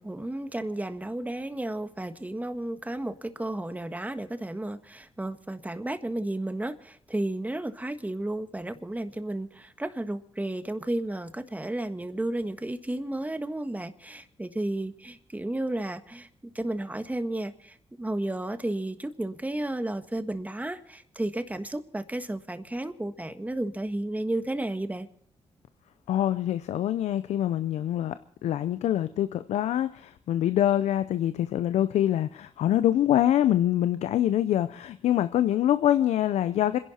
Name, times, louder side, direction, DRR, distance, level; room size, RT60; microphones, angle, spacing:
voice 1, 0.0-16.3 16.5-25.1, right 1 dB, 15° right, 9 dB, 1.5 m, -33 dB
voice 2, 26.1-28.1 28.4-36.8, left 11 dB, 85° left, 13 dB, 0.6 m, -25 dB
26.5 x 11.0 x 4.3 m, 0.62 s
cardioid pair, 55°, 11 cm